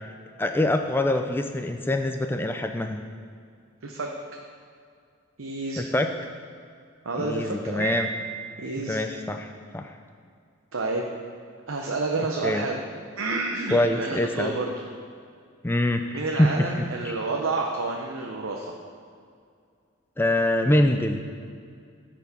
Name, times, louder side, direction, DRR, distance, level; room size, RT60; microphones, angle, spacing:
voice 1, 0.4-3.0 5.8-6.1 7.2-8.1 8.9-9.9 12.4-12.6 13.7-14.6 15.6-16.7 17.0-17.1 20.2-21.3, left 1 dB, 10° left, 5 dB, 0.3 m, -24 dB
voice 2, 5.4-5.9 7.0-7.9 8.6-9.0 10.7-11.0 11.7-12.8 13.2-14.7 16.1-18.7, right 3 dB, 70° right, 0 dB, 0.8 m, -29 dB
Piano, 7.8-8.8, right 7 dB, 40° right, 2.4 m, -34 dB
13.5 x 4.6 x 5.5 m, 2.3 s
head